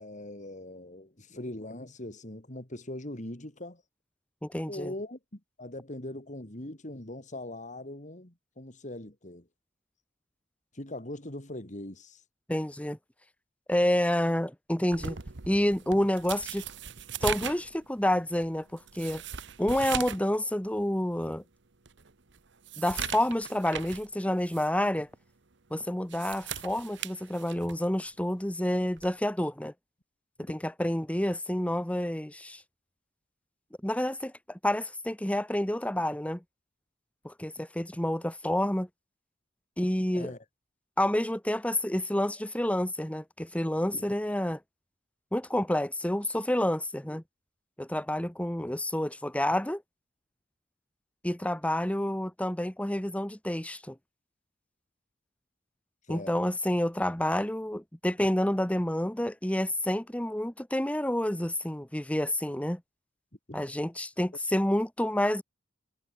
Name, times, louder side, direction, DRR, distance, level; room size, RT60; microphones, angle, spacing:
voice 1, 0.0-3.8 4.7-9.5 10.7-12.2 16.0-16.1 40.1-40.4 43.9-44.0 56.1-56.4 63.5-63.6, left 1 dB, 40° left, 3.4 m, -41 dB
voice 2, 4.4-4.9 12.5-13.0 13.7-15.2 15.5-16.6 17.2-19.2 19.6-21.4 22.8-25.1 25.7-29.7 30.4-32.6 33.8-36.4 37.2-38.9 39.8-40.3 41.0-44.6 45.3-47.2 47.8-49.8 51.2-54.0 56.1-62.8 63.5-65.4, left 1 dB, 5° left, 1.2 m, -29 dB
sound 1, 14.9-20.3 20.7-20.8 21.3-21.4 21.9-24.1 24.5-24.7 25.9-27.9 29.0-29.2, right 7 dB, 65° right, 1.3 m, -39 dB
head